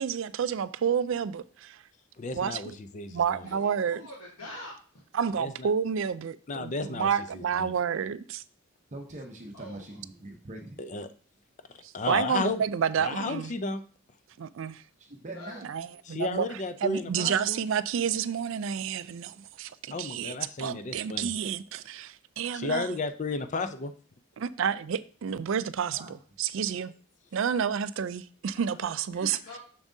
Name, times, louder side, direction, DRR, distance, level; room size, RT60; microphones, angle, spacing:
voice 1, 0.0-1.8 2.3-2.8 3.1-4.1 5.1-8.4 11.8-13.6 14.4-14.8 15.6-22.9 24.4-26.9 27.3-29.4, right 7 dB, 60° right, 0.3 m, -30 dB
voice 2, 2.2-3.6 5.4-5.7 6.5-7.7 10.8-11.1 11.9-12.6 13.0-13.8 16.1-17.6 19.9-21.3 22.5-23.9 28.8-28.9, left 3 dB, 35° left, 0.4 m, -33 dB
voice 3, 3.4-4.7 9.5-10.0 15.3-16.0 29.4-29.6, left 1 dB, 75° left, 1.3 m, -45 dB
voice 4, 8.9-10.8 15.0-15.6 25.9-26.1 29.2-29.4, right 1 dB, 35° right, 0.7 m, -42 dB
7.1 x 6.1 x 2.7 m
head